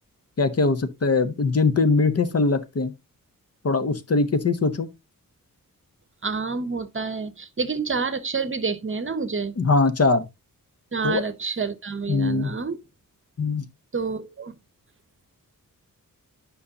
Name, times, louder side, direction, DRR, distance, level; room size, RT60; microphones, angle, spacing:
voice 1, 0.4-2.9 3.6-4.9 9.6-10.3 11.0-11.2 12.1-12.5 13.4-13.6, left 3 dB, 45° left, 0.8 m, -21 dB
voice 2, 6.2-9.5 10.9-12.8 13.9-14.5, right 4 dB, 35° right, 0.8 m, -28 dB
9.2 x 5.5 x 2.8 m
wide cardioid pair, 145°, 34 cm